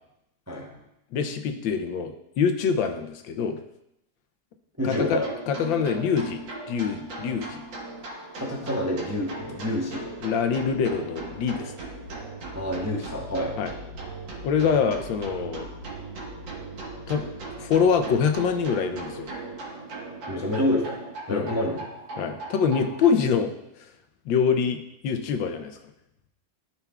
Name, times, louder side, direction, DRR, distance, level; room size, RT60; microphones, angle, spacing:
voice 1, 1.1-3.6 4.8-6.4 6.7-7.6 10.2-11.7 13.6-13.7 14.4-15.7 17.1-17.3 17.6-19.3 21.3-21.5 22.2-23.5 23.8-23.9 24.3-25.8, left 6 dB, 80° left, 6 dB, 1.4 m, -25 dB
voice 2, 4.8-5.3 8.4-10.1 12.5-13.6 20.3-21.0 21.3-21.8, left 1 dB, 15° right, -2 dB, 0.6 m, -27 dB
sound 1, 4.8-23.1, right 2 dB, 70° right, 2.1 m, -38 dB
13.5 x 5.7 x 2.3 m, 0.83 s
omnidirectional pair, 2.1 m